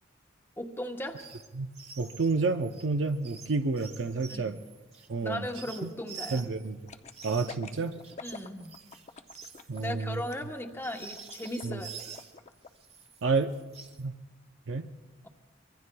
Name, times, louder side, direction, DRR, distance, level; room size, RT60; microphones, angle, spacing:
voice 1, 0.6-1.2 4.3-4.6 5.2-6.5 8.2-8.7 9.8-12.1, left 1 dB, 10° left, 4 dB, 0.9 m, -37 dB
sound 1, 1.1-1.5 1.7-6.7 7.1-12.4 12.8-14.0, right 6 dB, 35° right, 1.1 m, -48 dB
voice 2, 2.0-4.6 5.1-5.4 6.3-6.8 7.2-7.9 9.7-10.2 11.6-11.8 13.2-13.5 14.0-14.1 14.7-14.9, right 4 dB, 75° right, 7 dB, 0.6 m, -29 dB
sound 2, 6.9-12.7 13.1-13.2, left 4 dB, 35° left, 0.5 m, -46 dB
25.0 x 22.0 x 2.2 m, 1.2 s
head